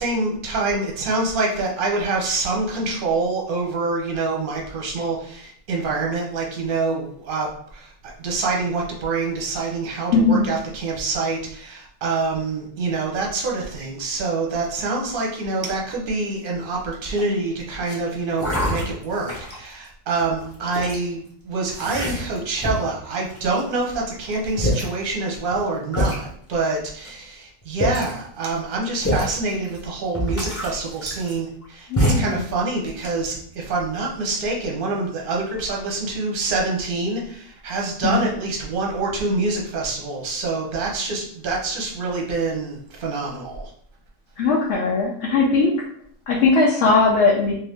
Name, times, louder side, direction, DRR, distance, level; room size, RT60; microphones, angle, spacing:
voice 1, 0.0-43.7, right 3 dB, 50° right, -1 dB, 0.8 m, -26 dB
voice 2, 10.1-10.4 31.9-32.4 38.0-38.2 44.4-45.7 46.3-47.5, left 3 dB, 70° left, -3 dB, 0.9 m, -19 dB
sound 1, 16.9-17.3 17.8-18.0 18.4-19.7 20.2-21.0 21.7-22.9 23.3-23.8 24.3-24.4 24.6-24.9 25.5-25.6 25.9-26.2 27.0-27.1 27.6-28.2 29.0-29.4 29.7-29.8 30.1-31.6 32.0-32.4 32.8-33.4, equal, 15° left, 0.6 m, -25 dB
2.7 x 2.6 x 3.4 m, 0.63 s
omnidirectional pair, 1.4 m